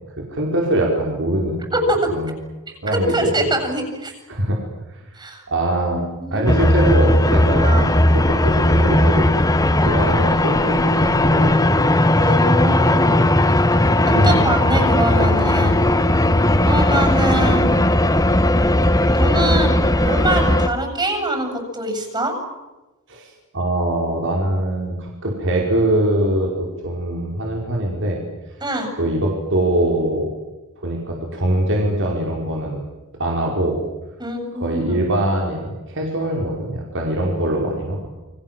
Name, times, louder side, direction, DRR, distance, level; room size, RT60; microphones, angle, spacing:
voice 1, 0.0-1.6 2.1-2.3 2.8-3.3 4.3-4.6 4.9-5.0 5.5-6.0 6.3-9.3 9.8-12.1 14.1-15.2 17.3-17.6 23.1-28.2 29.0-30.3 30.8-32.9 33.2-33.8 34.5-38.1, right 1 dB, 60° right, 0 dB, 5.3 m, -22 dB
voice 2, 1.7-2.1 2.9-4.1 5.1-5.4 5.9-6.6 7.6-7.9 12.1-13.4 14.1-15.8 16.6-17.8 19.1-22.4 28.6-28.9 34.2-35.0, right 1 dB, 20° right, 5 dB, 7.9 m, -24 dB
sound 1, 6.5-20.7, left 1 dB, 15° left, 1.4 m, -16 dB
30.0 x 24.5 x 7.7 m, 1.1 s
head